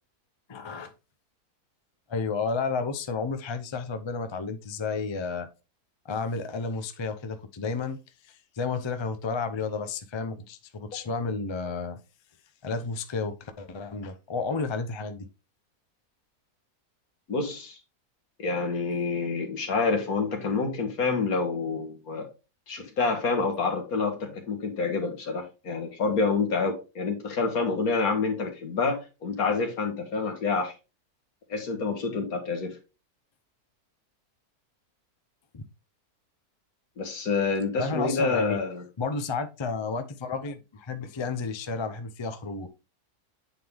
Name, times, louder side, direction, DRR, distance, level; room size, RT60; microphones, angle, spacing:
voice 1, 0.5-0.9 2.1-5.5 6.0-8.0 8.2-12.0 12.6-15.3 35.5-35.7 37.8-38.6 39.0-42.7, left 4 dB, 50° left, 0.3 m, -32 dB
voice 2, 17.3-17.8 18.4-22.3 22.7-30.7 31.5-32.8 37.0-38.8, left 4 dB, 70° left, 1.9 m, -27 dB
8.3 x 3.8 x 3.4 m
omnidirectional pair, 1.6 m